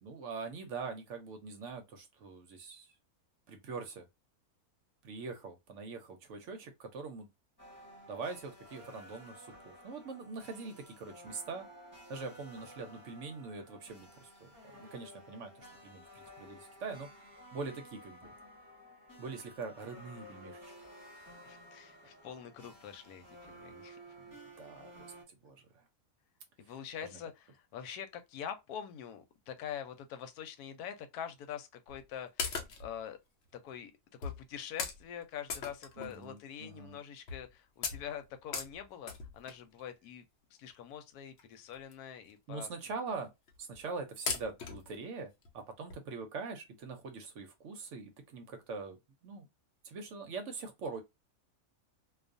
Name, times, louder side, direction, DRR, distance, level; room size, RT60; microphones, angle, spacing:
voice 1, 0.0-2.9 3.5-4.1 5.0-7.3 8.1-11.7 12.1-17.1 17.5-18.3 19.2-20.7 24.2-25.8 27.1-27.2 36.0-37.0 42.5-43.3 43.6-49.0 49.2-49.5 49.8-51.0, right 4 dB, 65° right, 0.8 m, -43 dB
sound 1, 7.6-25.2, equal, 15° left, 1.0 m, -54 dB
voice 2, 21.2-24.0 26.6-33.2 33.6-33.9 34.2-40.3 40.6-42.7, left 9 dB, 90° left, 1.1 m, -45 dB
sound 2, 31.9-32.0 32.4-33.0 33.7-33.8 34.2-34.4 34.8-35.0 35.5-36.4 36.8-36.9 37.3-37.5 37.8-39.7 40.7-40.8 41.4-41.5 41.7-41.9 42.3-42.4 42.6-42.7 43.5-43.8 44.3-44.9 45.4-45.5 45.9-46.0, left 5 dB, 60° left, 0.8 m, -38 dB
2.4 x 2.3 x 2.4 m
omnidirectional pair, 1.6 m